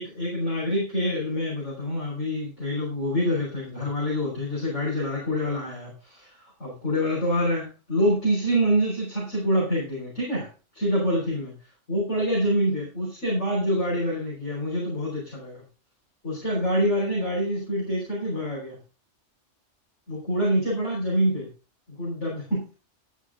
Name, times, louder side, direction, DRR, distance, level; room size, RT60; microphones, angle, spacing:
voice 1, 0.0-10.5 10.7-11.5 11.9-15.6 16.2-18.8 20.1-21.5 21.9-22.7, equal, 70° left, -5 dB, 5.8 m, -26 dB
13.0 x 10.0 x 3.9 m, 0.32 s
omnidirectional pair, 1.3 m